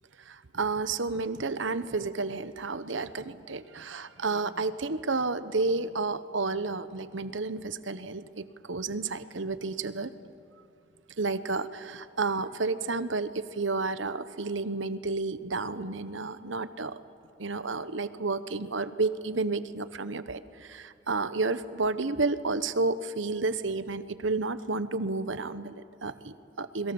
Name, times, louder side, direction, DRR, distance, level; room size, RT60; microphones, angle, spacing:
voice 1, 0.3-10.1 11.2-16.9 17.4-26.9, right 3 dB, 80° right, 13 dB, 1.0 m, -31 dB
29.0 x 22.0 x 7.1 m, 2.5 s
head